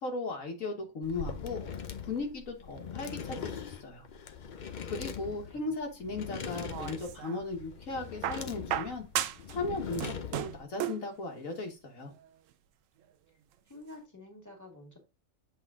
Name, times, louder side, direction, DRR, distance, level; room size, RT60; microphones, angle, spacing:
voice 1, 0.0-1.6 2.0-4.0 4.6-9.1 9.5-12.1, left 3 dB, 85° left, 2 dB, 1.8 m, -37 dB
sound 1, 1.0-10.6, left 7 dB, 50° left, 0.6 m, -41 dB
voice 2, 5.0-5.7 13.7-15.0, left 2 dB, 15° left, 2 dB, 2.0 m, -50 dB
sound 2, 6.4-7.4 8.2-9.6 9.8-11.1 12.2-12.3, right 11 dB, 80° right, 1.0 m, -35 dB
7.7 x 3.7 x 3.6 m, 0.27 s
omnidirectional pair, 1.4 m